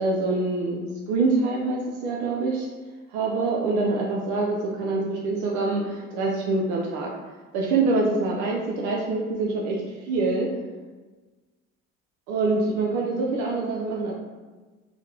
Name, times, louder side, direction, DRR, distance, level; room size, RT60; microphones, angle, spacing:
voice 1, 0.0-2.7 3.1-7.1 7.5-10.5 12.3-14.1, right 3 dB, 80° right, -2 dB, 0.7 m, -25 dB
3.9 x 3.0 x 3.4 m, 1.3 s
cardioid pair, 110°, 29 cm